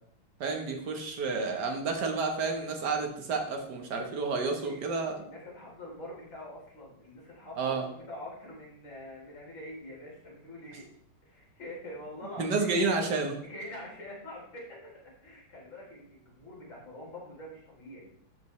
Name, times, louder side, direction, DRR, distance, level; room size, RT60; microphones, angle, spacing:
voice 1, 0.4-5.1 7.6-7.8 12.4-13.4, right 4 dB, 55° right, 3 dB, 1.6 m, -30 dB
voice 2, 4.5-10.9 11.3-12.8 13.4-14.8 15.2-18.1, left 1 dB, 60° left, -6 dB, 4.1 m, -45 dB
13.5 x 5.1 x 3.2 m, 0.68 s
omnidirectional pair, 2.4 m